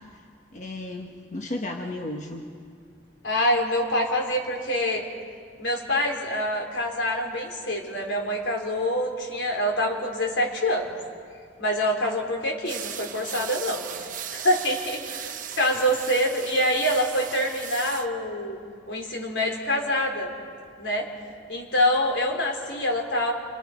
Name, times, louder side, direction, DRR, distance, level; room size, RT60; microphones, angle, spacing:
voice 1, 0.5-2.4, left 1 dB, 45° left, 2 dB, 1.4 m, -34 dB
voice 2, 3.2-5.0 5.6-10.9 11.6-13.8 14.3-18.6 18.9-20.3 20.8-21.1 21.5-23.3, equal, 85° left, 1 dB, 3.9 m, -25 dB
sound 1, 12.6-18.1, right 9 dB, 50° right, 1.0 m, -37 dB
27.5 x 27.0 x 5.1 m, 2.1 s
head